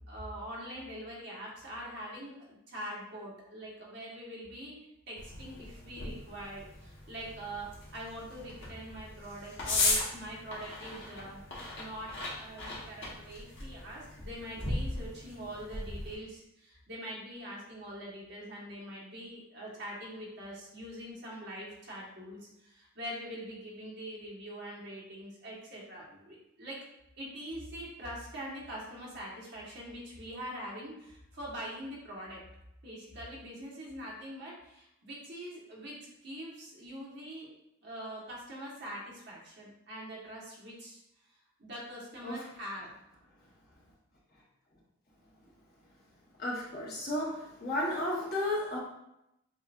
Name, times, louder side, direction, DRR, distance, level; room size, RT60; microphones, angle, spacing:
voice 1, 0.1-4.7 5.1-11.4 11.8-26.8 27.2-32.4 32.8-37.5 37.8-41.0 41.6-42.9, equal, 55° right, -5 dB, 1.4 m, -43 dB
sound 1, 5.2-16.1, left 2 dB, 60° left, 1.4 m, -37 dB
voice 2, 46.4-47.3 47.6-48.8, left 1 dB, 45° left, -5 dB, 1.2 m, -32 dB
7.0 x 2.5 x 2.5 m, 0.84 s
head